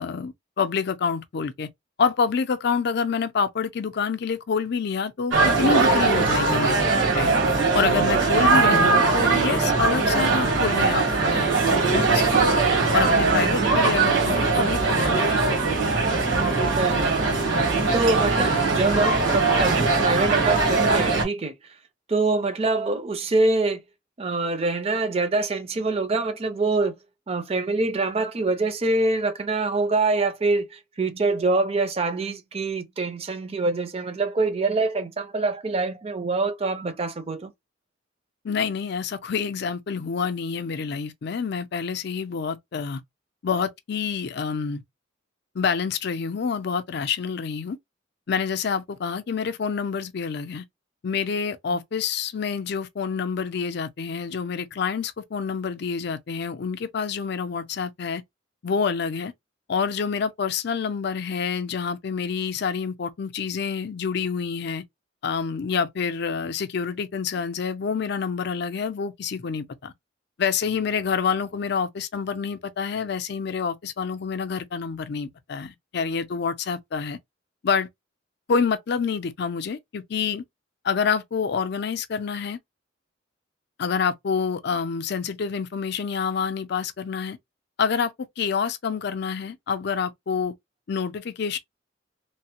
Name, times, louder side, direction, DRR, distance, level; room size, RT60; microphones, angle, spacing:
voice 1, 0.0-1.7 2.0-6.9 7.1-7.3 7.7-12.5 12.9-15.5 38.4-43.0 43.4-44.8 45.5-47.8 48.3-50.6 51.0-58.2 58.6-59.3 59.7-64.8 65.2-69.9 70.4-77.2 77.6-77.9 78.5-80.4 80.8-82.6 83.8-87.4 87.8-90.5 90.9-91.6, left 6 dB, 60° left, 0.4 m, -27 dB
sound 1, 5.3-21.2, right 3 dB, 75° right, 1.3 m, -21 dB
voice 2, 16.7-17.3 17.9-21.8 22.1-23.8 24.2-27.0 27.3-37.5, right 3 dB, 30° right, 0.5 m, -25 dB
3.1 x 2.0 x 2.8 m
head